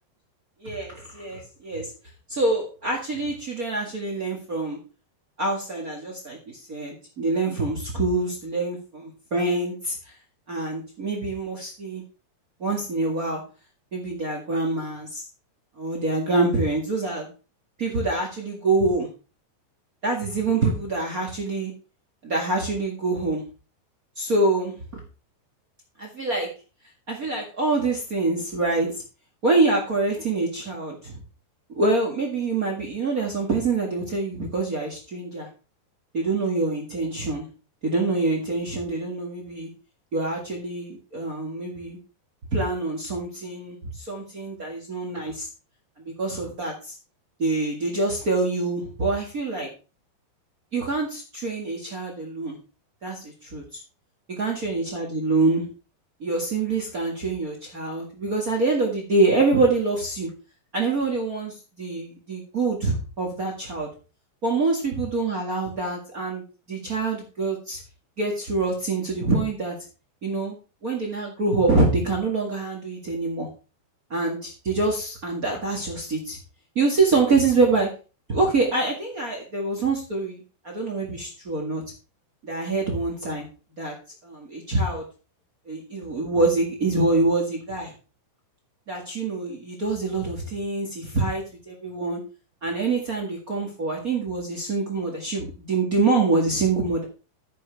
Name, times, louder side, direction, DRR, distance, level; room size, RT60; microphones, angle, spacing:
voice 1, 0.6-1.9 2.3-4.8 5.4-10.0 10.5-12.0 12.6-13.4 13.9-15.2 15.8-17.3 17.8-19.1 20.0-21.7 22.2-23.4 24.2-24.7 26.0-26.5 27.1-28.9 29.4-31.1 31.7-35.5 36.1-37.4 37.8-39.7 40.1-42.0 42.5-45.5 46.0-46.9 47.4-49.7 50.7-52.6 53.0-53.6 54.3-55.6 56.2-60.3 60.7-63.9 64.4-66.4 66.7-67.8 68.2-69.7 70.2-70.5 70.8-73.5 74.1-76.4 76.7-77.9 78.3-81.8 82.4-83.5 83.8-83.9 84.2-85.0 85.7-87.9 88.9-92.2 92.6-97.0, right 3 dB, 55° right, 1 dB, 0.9 m, -25 dB
10.5 x 9.3 x 3.4 m, 0.33 s
omnidirectional pair, 5.0 m